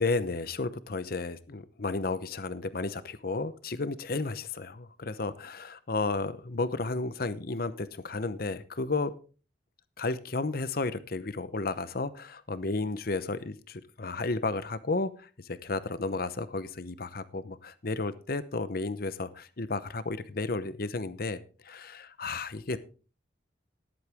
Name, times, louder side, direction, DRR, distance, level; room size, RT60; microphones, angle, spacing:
voice 1, 0.0-9.1 10.0-21.4 21.6-22.8, left 3 dB, 55° left, 0.8 m, -33 dB
13.0 x 11.0 x 3.5 m
head